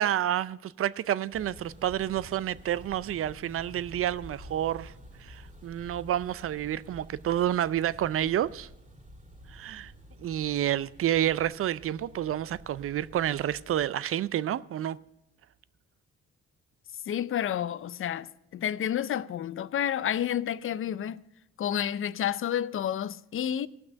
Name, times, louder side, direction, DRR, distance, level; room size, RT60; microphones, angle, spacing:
voice 1, 0.0-4.9 5.2-8.7 9.5-9.9 10.2-15.0, right 11 dB, 50° right, 0.4 m, -29 dB
sound 1, 1.3-13.9, equal, 25° right, 2.5 m, -50 dB
voice 2, 17.1-21.2 21.6-23.7, left 10 dB, 45° left, 0.5 m, -30 dB
16.5 x 6.0 x 6.4 m
cardioid pair, 90°, 30 cm